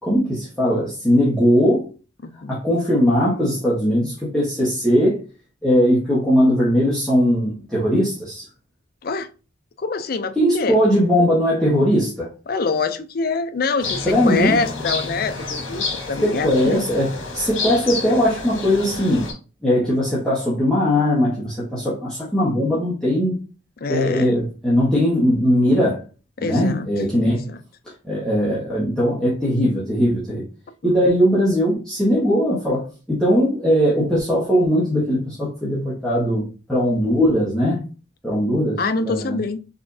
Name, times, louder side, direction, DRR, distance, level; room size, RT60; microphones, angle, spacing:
voice 1, 0.0-1.9 2.5-5.2 5.6-8.4 10.4-12.3 14.0-14.6 16.2-19.3 19.6-23.4 23.9-26.0 26.4-27.5 28.0-30.4 30.8-37.8 38.2-39.4, equal, 5° left, 1.2 m, -19 dB
voice 2, 2.2-2.5 9.0-9.3 9.8-10.8 12.5-16.8 23.8-24.4 26.4-26.9 27.2-27.6 30.8-31.1 38.8-39.6, left 4 dB, 45° left, 0.4 m, -25 dB
sound 1, 13.8-19.3, left 3 dB, 80° left, 1.3 m, -30 dB
4.9 x 3.5 x 2.7 m
head